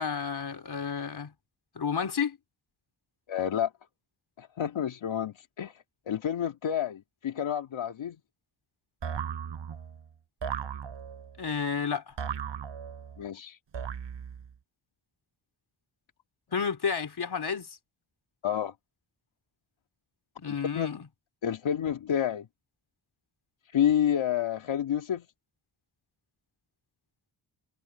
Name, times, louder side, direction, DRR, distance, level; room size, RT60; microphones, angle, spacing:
voice 1, 0.0-1.3 1.7-2.4 11.4-12.1 16.5-17.7 20.4-21.0, left 6 dB, 55° left, 4.3 m, -31 dB
voice 2, 3.3-3.7 4.4-5.7 6.1-8.2 13.2-13.6 18.4-18.7 20.4-20.9 21.4-22.5 23.7-25.3, left 9 dB, 85° left, 2.3 m, -29 dB
sound 1, 9.0-10.0 10.4-11.4 12.2-13.2 13.7-14.5, right 7 dB, 70° right, 5.8 m, -36 dB
cardioid pair, 65°, 45 cm